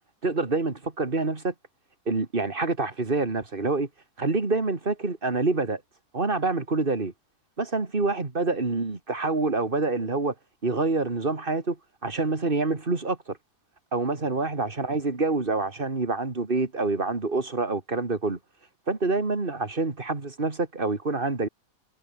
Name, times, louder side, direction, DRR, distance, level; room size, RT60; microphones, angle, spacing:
voice 1, 0.2-1.5 2.1-3.9 4.2-5.8 6.1-7.1 7.6-10.3 10.6-11.8 12.0-13.4 13.9-18.4 18.9-21.5, right 3 dB, 30° right, 2.6 m, -26 dB
omnidirectional pair, 1.7 m